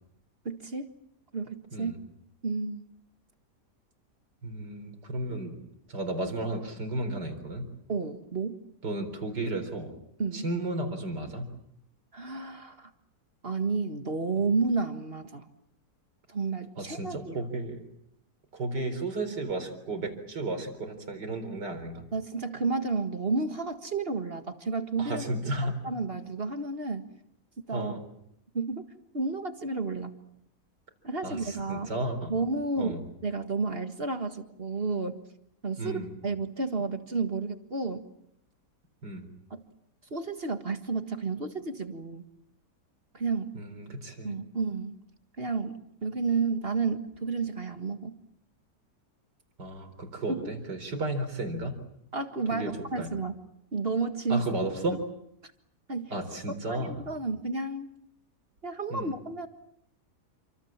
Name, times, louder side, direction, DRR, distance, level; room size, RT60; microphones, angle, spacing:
voice 1, 0.5-0.9 1.3-1.9 2.4-2.8 7.9-8.6 10.2-10.5 12.1-12.9 13.4-15.5 16.3-17.4 22.1-25.2 25.6-27.0 27.7-27.9 28.5-28.8 29.1-30.2 31.0-31.9 32.3-35.2 35.6-38.0 39.5-39.6 40.1-42.3 43.1-43.6 44.2-45.0 45.4-48.2 50.3-50.5 52.1-53.3 53.7-54.4 55.9-56.1 56.7-57.9 58.6-59.5, right 4 dB, 35° right, 7 dB, 1.9 m, -31 dB
voice 2, 4.4-5.6 5.9-7.7 8.8-9.9 10.3-11.5 16.8-17.8 18.5-22.0 25.0-25.8 27.7-28.0 31.2-32.3 32.8-33.0 35.8-36.1 39.0-39.3 43.5-44.4 49.6-51.8 52.5-52.7 53.0-53.1 54.3-55.0 56.1-57.0 58.9-59.1, right 2 dB, 85° right, 8 dB, 4.7 m, -33 dB
28.5 x 26.0 x 7.4 m, 0.76 s
omnidirectional pair, 1.8 m